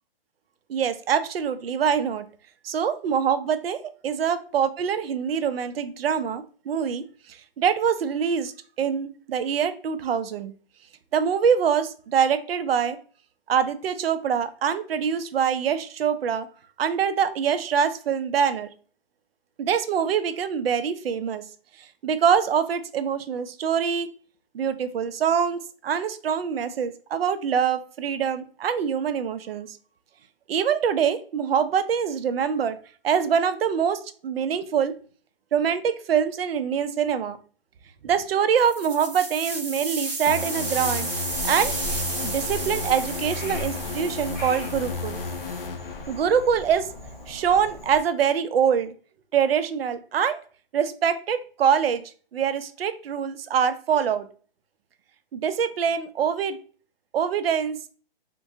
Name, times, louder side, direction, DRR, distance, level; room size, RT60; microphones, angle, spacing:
voice 1, 0.7-2.3 2.6-8.5 8.8-10.5 11.1-13.0 13.5-16.5 16.8-18.7 19.6-21.4 21.8-24.1 24.5-29.8 30.5-32.8 33.0-34.9 35.5-37.4 38.0-41.1 41.4-41.7 42.2-45.2 46.1-46.9 47.3-48.9 49.3-50.4 50.7-52.0 52.3-54.3 55.3-56.6 57.1-57.9, right 7 dB, 75° right, 11 dB, 0.5 m, -24 dB
sound 1, 38.6-45.7, right 3 dB, 15° right, 0.4 m, -33 dB
sound 2, 40.3-46.7, left 4 dB, 70° left, 0.7 m, -34 dB
Frog, 41.3-48.0, left 1 dB, 50° left, 1.4 m, -39 dB
3.7 x 2.2 x 2.6 m, 0.41 s
hypercardioid pair, 170°, 30 cm